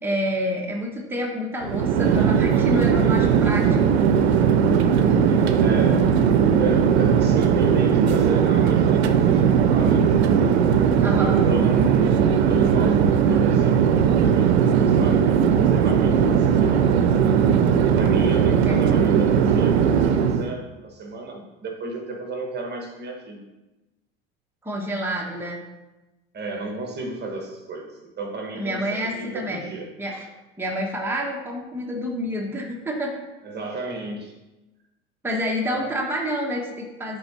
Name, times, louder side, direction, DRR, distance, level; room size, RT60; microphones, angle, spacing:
voice 1, 0.0-3.7 11.0-11.4 18.6-18.7 24.6-25.6 28.6-29.7 30.0-30.3 30.6-33.2 35.2-37.2, equal, 5° right, -1 dB, 1.2 m, -28 dB
Chatter / Fixed-wing aircraft airplane, 1.6-20.5, right 7 dB, 90° right, 0.5 m, -18 dB
voice 2, 5.6-6.2 6.6-10.1 11.2-17.1 17.9-23.4 26.3-29.8 33.4-34.3 35.7-35.9, right 3 dB, 30° right, 1 dB, 1.3 m, -33 dB
7.6 x 3.7 x 4.2 m, 1.0 s
hypercardioid pair, 80°, 31 cm